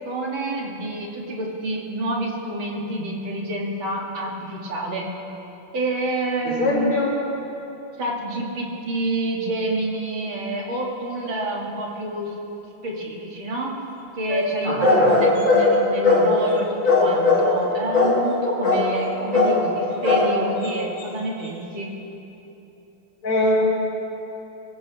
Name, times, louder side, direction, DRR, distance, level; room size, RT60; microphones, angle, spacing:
voice 1, 0.1-5.1 5.7-7.0 8.0-12.3 12.8-13.7 14.2-21.9, right 1 dB, 70° right, -2 dB, 2.6 m, -28 dB
voice 2, 6.4-7.1 14.6-15.1 23.2-23.5, left 2 dB, 75° left, -6 dB, 4.7 m, -22 dB
sound 1, 14.3-16.6 16.8-17.6 17.9-18.4 18.6-19.1 19.3-19.6 20.0-20.3 20.6-20.7 21.0-21.1, left 3 dB, 45° left, 2.7 m, -18 dB
23.5 x 15.0 x 2.9 m, 3.0 s
omnidirectional pair, 2.3 m